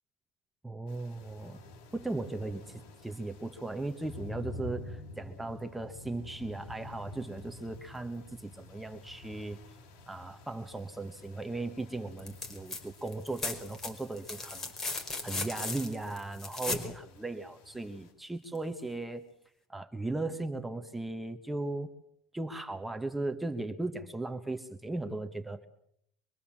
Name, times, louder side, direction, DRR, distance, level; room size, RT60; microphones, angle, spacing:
voice 1, 0.6-1.6 1.9-9.6 10.1-19.3 19.7-21.9 22.3-25.7, right 2 dB, 5° right, 6 dB, 1.2 m, -37 dB
sound 1, 0.9-18.1, left 2 dB, 60° left, 7.0 m, -49 dB
sound 2, 12.2-12.8 13.1-16.9 18.6-18.7, left 3 dB, 20° left, 5.0 m, -37 dB
25.0 x 23.5 x 7.4 m, 0.72 s
cardioid pair, 140°, 2 cm